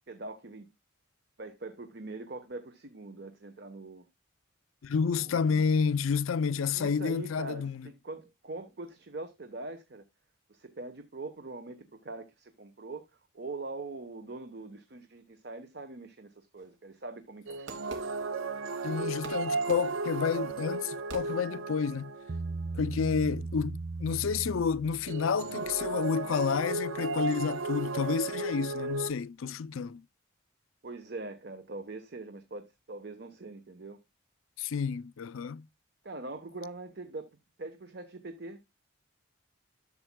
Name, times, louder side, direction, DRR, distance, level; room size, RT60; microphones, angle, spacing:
voice 1, 0.1-0.7 1.4-4.0 5.0-5.7 6.5-10.0 10.5-13.1 13.3-17.8 30.8-34.0 36.0-37.3 37.6-38.6, right 2 dB, 55° right, 1.0 m, -43 dB
voice 2, 4.8-7.9 18.8-22.1 22.7-30.0 34.6-35.6, left 6 dB, 80° left, 0.4 m, -30 dB
Fireworks, 16.6-18.8 19.2-21.9, right 3 dB, 70° right, 2.4 m, -48 dB
sound 1, 17.5-22.5 25.1-29.1, right 3 dB, 90° right, 0.7 m, -34 dB
Bass guitar, 22.3-25.7, right 3 dB, 35° right, 0.4 m, -38 dB
12.0 x 7.3 x 2.2 m
head